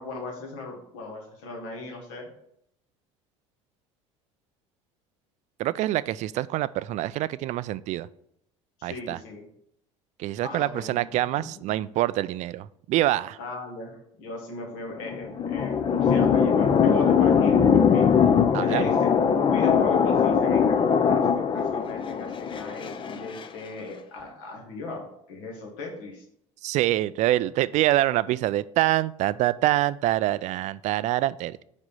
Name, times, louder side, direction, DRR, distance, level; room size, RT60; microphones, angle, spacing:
voice 1, 0.0-2.3 8.8-9.5 10.4-11.0 11.4-11.8 13.4-13.9 14.2-18.1 18.6-26.2, left 3 dB, 65° left, 1 dB, 1.9 m, -38 dB
voice 2, 5.6-8.1 8.8-9.2 10.2-13.4 18.5-18.9 26.6-31.6, right 15 dB, 45° right, 17 dB, 0.4 m, -25 dB
sound 1, 14.9-23.5, left 7 dB, 30° left, 0.6 m, -21 dB
5.3 x 5.0 x 5.4 m, 0.72 s
figure-of-eight pair, 65°, 16 cm